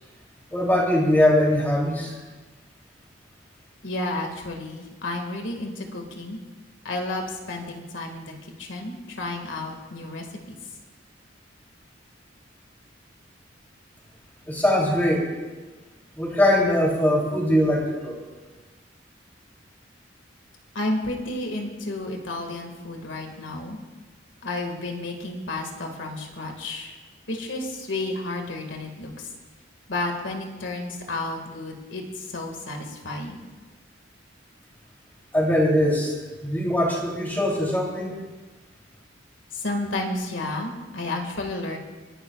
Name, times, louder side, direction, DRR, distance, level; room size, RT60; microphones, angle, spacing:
voice 1, 0.5-2.1 14.5-15.2 16.1-18.1 35.3-36.2 36.4-38.1, left 1 dB, 10° left, -3 dB, 3.2 m, -21 dB
voice 2, 3.8-6.4 6.8-8.3 8.6-10.6 20.8-23.8 24.4-26.9 27.3-29.3 29.9-33.4 39.5-41.8, left 2 dB, 85° left, 3 dB, 2.0 m, -31 dB
26.5 x 11.5 x 2.4 m, 1.3 s
head